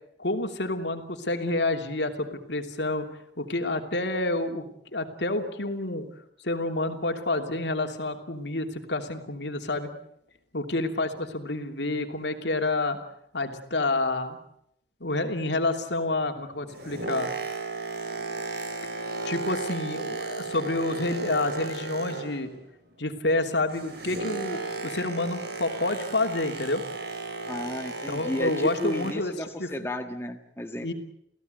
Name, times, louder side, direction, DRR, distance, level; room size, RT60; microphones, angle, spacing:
voice 1, 0.2-3.1 3.4-4.6 4.9-6.1 6.4-9.9 10.5-13.0 13.3-14.4 15.0-17.3 19.2-22.5 23.0-26.8 28.1-29.7 30.8-30.9, left 2 dB, 70° left, 6 dB, 3.0 m, -28 dB
Boat Water vehicle, 16.5-22.6 22.9-29.4 30.0-30.1, right 3 dB, 60° right, 6.5 m, -35 dB
voice 2, 27.5-30.9, left 1 dB, 15° left, 5 dB, 1.5 m, -33 dB
29.5 x 16.5 x 8.1 m, 0.73 s
head